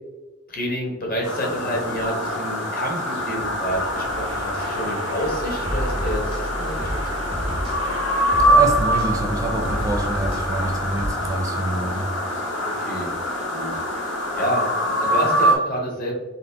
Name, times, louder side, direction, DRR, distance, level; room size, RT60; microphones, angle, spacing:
voice 1, 0.5-7.2 7.4-7.6 12.6-13.1 13.5-13.7 14.3-16.2, equal, 50° left, -1 dB, 1.2 m, -29 dB
sound 1, 1.2-15.6, equal, 70° left, 1.2 m, -24 dB
sound 2, 3.2-9.6, right 2 dB, 90° right, 0.5 m, -40 dB
sound 3, 5.2-11.1, equal, 30° left, 0.8 m, -30 dB
voice 2, 8.5-12.1, right 2 dB, 20° right, 3 dB, 0.4 m, -26 dB
4.2 x 3.5 x 2.8 m, 1.2 s
head